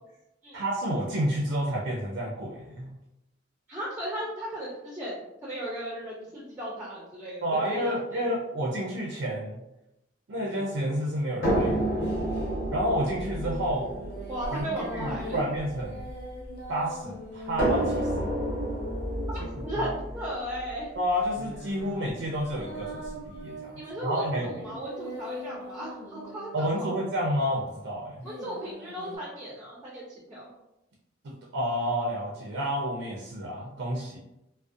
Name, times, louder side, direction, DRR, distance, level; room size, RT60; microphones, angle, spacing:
voice 1, 0.5-2.9 7.4-9.6 10.3-12.1 12.7-13.9 14.5-16.1 16.7-18.3 19.8-19.9 21.0-24.6 26.5-28.2 31.2-34.2, equal, 65° right, -2 dB, 0.4 m, -30 dB
voice 2, 3.7-8.3 14.3-15.4 19.3-20.9 23.8-26.9 28.2-30.5, equal, 10° right, -6 dB, 0.5 m, -36 dB
sound 1, 10.4-12.5 13.6-20.4 21.1-27.5 28.2-29.2, left 1 dB, 60° left, 0.6 m, -42 dB
sound 2, 11.4-16.6 17.6-21.5 22.5-22.6 23.0-23.1, right 1 dB, 85° left, 1.2 m, -30 dB
2.4 x 2.0 x 2.5 m, 0.91 s
head